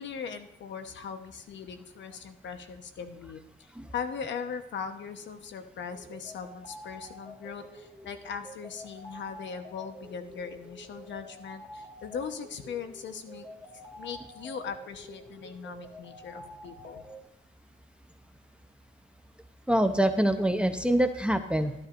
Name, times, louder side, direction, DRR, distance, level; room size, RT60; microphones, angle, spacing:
voice 1, 0.0-13.5 14.0-17.0, left 6 dB, 65° left, 8 dB, 1.0 m, -39 dB
sound 1, 5.9-17.3, equal, 15° left, 1.7 m, -48 dB
voice 2, 19.7-21.7, right 1 dB, 5° right, 8 dB, 0.7 m, -25 dB
12.0 x 12.0 x 2.6 m, 0.86 s
cardioid pair, 90°, 20 cm